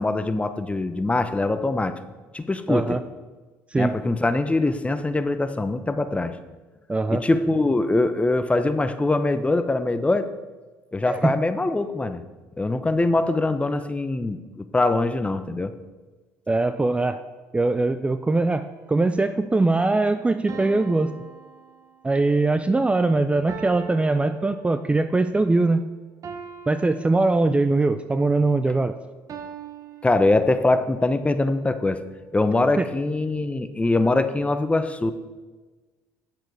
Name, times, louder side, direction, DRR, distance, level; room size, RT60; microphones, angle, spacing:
voice 1, 0.0-1.9 2.3-3.0 3.8-6.4 7.1-10.3 10.9-12.2 12.6-15.7 30.0-32.0 32.3-35.1, left 2 dB, 15° left, 10 dB, 0.8 m, -23 dB
voice 2, 2.7-3.0 3.7-4.0 6.9-7.2 11.1-11.3 16.5-17.2 17.5-21.1 22.0-25.8 26.7-28.9 32.8-32.9, right 2 dB, 15° right, 11 dB, 0.5 m, -21 dB
sound 1, 18.3-19.1 20.5-22.3 23.5-25.1 26.2-27.9 29.3-30.9, right 6 dB, 45° right, 1.2 m, -42 dB
9.2 x 7.5 x 4.8 m, 1.3 s
hypercardioid pair, 60°, 7 cm